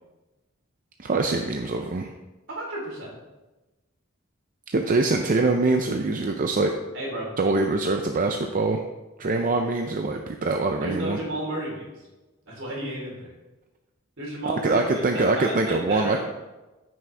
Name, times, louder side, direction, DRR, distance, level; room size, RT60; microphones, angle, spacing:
voice 1, 1.0-2.1 4.7-6.7 7.4-8.8 9.2-11.2 14.5-16.2, right 3 dB, 40° right, 4 dB, 0.5 m, -24 dB
voice 2, 2.5-3.1 6.9-7.3 10.8-11.9 12.5-13.3 14.2-16.2, right 1 dB, 65° right, -3 dB, 3.4 m, -32 dB
14.0 x 6.2 x 3.4 m, 1.1 s
head